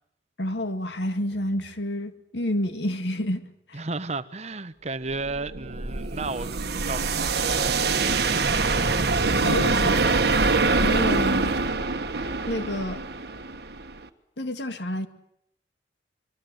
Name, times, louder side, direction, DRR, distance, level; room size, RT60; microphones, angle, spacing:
voice 1, 0.4-3.4 3.7-3.8 9.4-10.1 10.7-11.5 12.5-13.0 14.4-15.1, left 1 dB, 70° left, 2.2 m, -29 dB
voice 2, 3.7-6.6 6.9-8.0, right 3 dB, 35° right, 1.0 m, -34 dB
sound 1, 5.1-14.0, right 3 dB, 60° right, 1.4 m, -24 dB
26.5 x 23.0 x 7.9 m
head